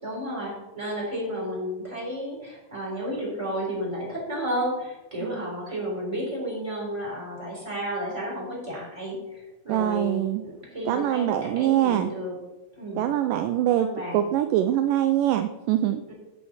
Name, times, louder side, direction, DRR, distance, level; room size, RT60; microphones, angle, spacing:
voice 1, 0.0-12.4 12.8-13.0 13.7-14.3 16.1-16.2, equal, 10° right, -4 dB, 3.5 m, -32 dB
voice 2, 9.7-10.4 10.9-12.1 13.0-16.0, right 12 dB, 80° right, 9 dB, 2.1 m, -24 dB
8.7 x 5.6 x 7.8 m, 1.0 s
omnidirectional pair, 4.1 m